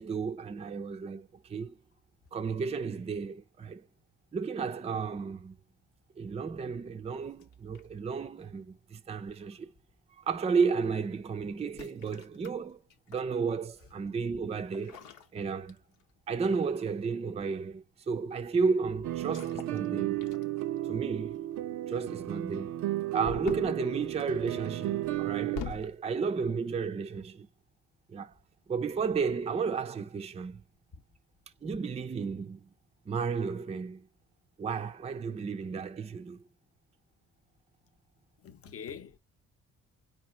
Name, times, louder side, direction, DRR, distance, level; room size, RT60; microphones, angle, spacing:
voice 1, 0.0-1.8 2.3-3.8 4.3-5.6 6.2-9.7 10.2-12.8 13.1-15.0 15.3-15.8 16.3-20.2 20.9-21.5 21.9-22.8 23.1-27.5 28.1-28.3 28.7-30.6 31.6-32.7 33.1-34.1 34.6-36.4, right 5 dB, 20° right, 0.4 m, -33 dB
sound 1, 7.3-8.1 9.3-9.6 11.6-13.3 14.7-16.1 16.4-16.7 19.2-19.9 20.2-20.8 23.2-23.8 25.0-26.0, left 6 dB, 80° left, 0.8 m, -44 dB
sound 2, 19.0-25.6, right 14 dB, 75° right, 0.5 m, -34 dB
voice 2, 38.4-39.2, left 7 dB, 50° left, 0.8 m, -44 dB
4.9 x 2.5 x 4.2 m
cardioid pair, 90°, 30 cm